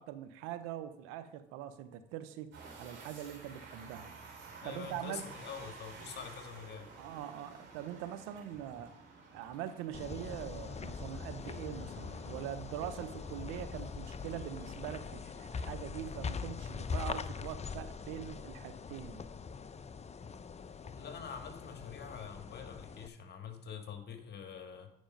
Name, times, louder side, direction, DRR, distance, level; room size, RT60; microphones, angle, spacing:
voice 1, 0.0-2.5 2.8-4.1 4.6-5.3 7.0-8.9 9.3-19.2, right 11 dB, 85° right, 11 dB, 0.7 m, -43 dB
sound 1, 2.5-16.0, right 4 dB, 65° right, 2.8 m, -54 dB
voice 2, 4.6-6.9 21.0-24.9, left 7 dB, 55° left, 5 dB, 1.8 m, -45 dB
sound 2, 9.9-23.1, left 5 dB, 30° left, 0.6 m, -42 dB
9.4 x 5.1 x 5.1 m, 0.75 s
supercardioid pair, 60°, 21 cm